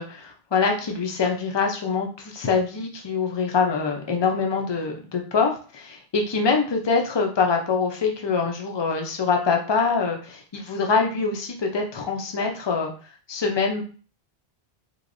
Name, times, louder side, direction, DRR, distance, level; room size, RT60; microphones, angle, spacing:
voice 1, 0.0-12.9 13.3-13.8, left 5 dB, 35° left, 2 dB, 0.5 m, -24 dB
3.2 x 3.0 x 2.5 m, 0.38 s
omnidirectional pair, 1.1 m